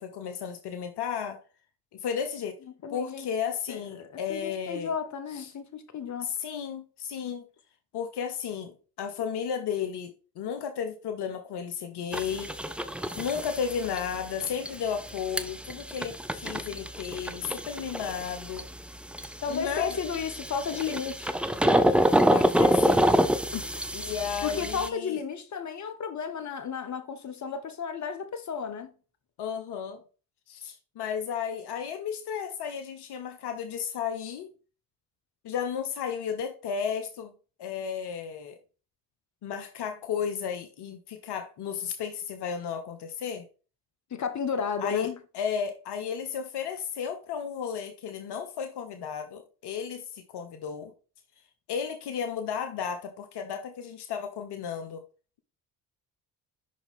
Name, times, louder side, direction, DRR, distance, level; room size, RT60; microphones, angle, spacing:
voice 1, 0.0-1.4 1.9-2.6 2.9-4.9 5.3-5.5 6.2-7.4 7.9-12.5 13.2-18.7 19.5-20.0 22.3-23.1 23.9-25.2 29.4-30.0 30.5-34.5 35.4-37.3 37.6-38.6 39.4-43.5 44.8-50.9 51.7-55.0, left 7 dB, 60° left, 1.1 m, -33 dB
voice 2, 2.8-3.3 3.7-6.3 19.4-21.3 23.5-23.8 24.4-28.9 44.1-45.2, left 6 dB, 40° left, 1.2 m, -33 dB
sound 1, 12.1-24.9, equal, ahead, 0.6 m, -27 dB
5.9 x 4.9 x 3.6 m
hypercardioid pair, 50°, 46 cm